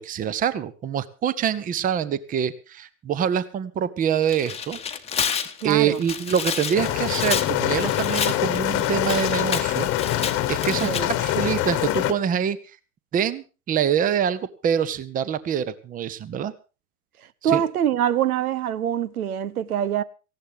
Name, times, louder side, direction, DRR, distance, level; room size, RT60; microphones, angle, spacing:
voice 1, 0.0-4.8 5.6-10.9 11.2-12.6 13.1-16.5 17.4-17.6, right 8 dB, 20° right, 1.0 m, -25 dB
Tearing, 4.1-11.0, left 7 dB, 15° left, 1.2 m, -30 dB
voice 2, 5.6-6.0 10.8-11.1 17.4-20.0, right 10 dB, 75° right, 1.0 m, -24 dB
sound 1, 6.7-12.1, left 13 dB, 30° left, 1.4 m, -24 dB
18.5 x 15.5 x 3.6 m
hypercardioid pair, 110°, 44 cm